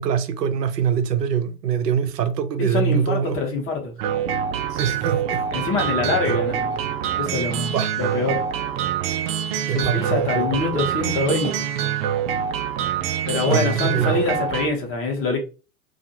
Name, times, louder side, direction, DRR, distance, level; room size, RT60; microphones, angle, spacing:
voice 1, 0.0-3.4 4.7-5.7 6.2-6.3 7.7-7.9 9.7-10.9 11.4-11.6 11.8-11.9 13.5-14.2, right 8 dB, 80° right, 0.7 m, -24 dB
voice 2, 2.6-3.9 5.5-6.7 7.2-8.4 9.7-11.5 13.3-15.4, left 3 dB, 25° left, 1.0 m, -24 dB
sound 1, 4.0-14.7, right 9 dB, 40° right, 0.5 m, -25 dB
2.6 x 2.5 x 2.7 m
hypercardioid pair, 105°, 48 cm